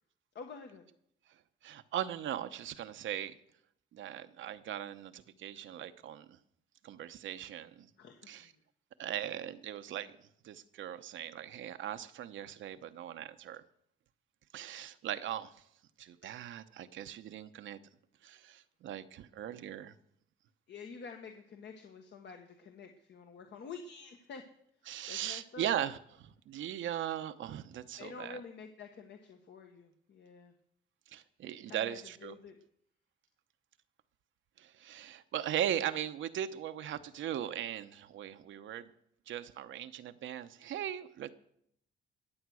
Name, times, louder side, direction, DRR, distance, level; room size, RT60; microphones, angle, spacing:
voice 1, 0.3-0.9 8.0-8.6 16.2-16.3 20.7-24.5 24.8-25.7 28.0-30.5 31.7-32.6, left 5 dB, 65° left, 4 dB, 1.5 m, -49 dB
voice 2, 1.6-3.4 3.9-6.4 6.8-7.9 8.3-8.5 9.0-10.2 10.4-13.6 14.5-15.6 16.0-17.8 18.2-19.9 24.9-28.4 31.1-32.3 34.6-38.9 39.3-41.3, right 10 dB, 75° right, 10 dB, 0.9 m, -39 dB
21.5 x 8.0 x 6.3 m, 0.72 s
cardioid pair, 90°, 20 cm